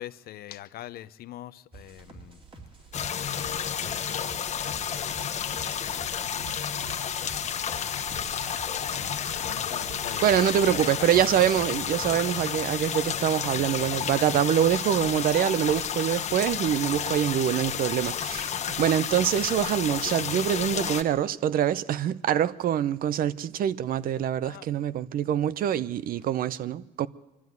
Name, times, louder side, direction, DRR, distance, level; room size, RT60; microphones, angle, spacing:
voice 1, 0.0-2.4 3.1-4.7 5.0-5.5 5.8-6.5 8.4-11.7 24.4-24.7, left 13 dB, 65° left, 0.7 m, -44 dB
sound 1, 1.7-12.3, right 3 dB, 30° right, 2.6 m, -48 dB
sound 2, 2.8-13.6, right 5 dB, 75° right, 2.2 m, -52 dB
sound 3, 2.9-21.0, left 8 dB, 40° left, 1.1 m, -31 dB
voice 2, 10.2-27.1, right 10 dB, 60° right, 0.7 m, -25 dB
23.5 x 13.0 x 9.4 m
cardioid pair, 110°, 17 cm